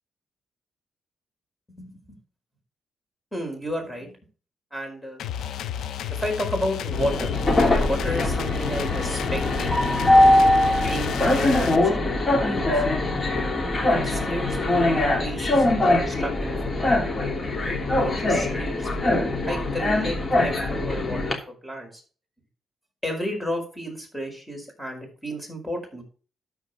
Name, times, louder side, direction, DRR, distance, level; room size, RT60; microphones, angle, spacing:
voice 1, 1.8-2.2 3.3-4.1 4.7-5.2 6.1-7.3 7.8-10.4 10.9-12.9 13.9-14.8 15.2-17.0 18.0-21.4 21.6-22.0 23.0-26.0, equal, 5° left, 2 dB, 5.0 m, -32 dB
sound 1, 5.2-11.8, left 9 dB, 90° left, 0.7 m, -32 dB
Train, 6.9-21.3, left 1 dB, 35° left, 3.1 m, -22 dB
13.0 x 5.0 x 5.2 m, 0.39 s
cardioid pair, 85°, 0 cm